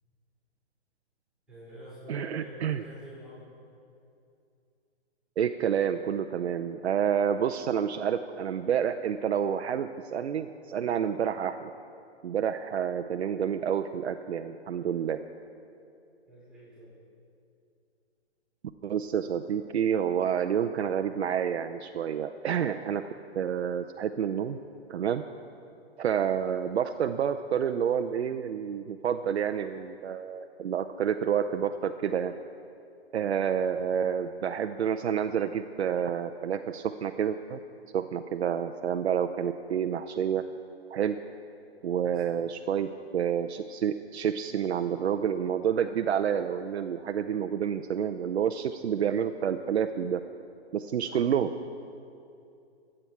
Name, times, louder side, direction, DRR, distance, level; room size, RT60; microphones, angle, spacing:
voice 1, 1.5-3.5 16.3-17.0 42.0-42.5 51.0-51.5, equal, 5° right, -11 dB, 4.5 m, -48 dB
voice 2, 2.1-2.8 5.4-11.6 12.2-15.2 18.8-23.1 23.3-24.6 24.9-25.2 26.0-32.3 33.1-37.6 37.9-40.4 40.9-41.2 41.8-50.2 50.7-51.5, right 8 dB, 80° right, 7 dB, 0.7 m, -29 dB
25.5 x 8.9 x 4.6 m, 2.6 s
hypercardioid pair, 155°, 32 cm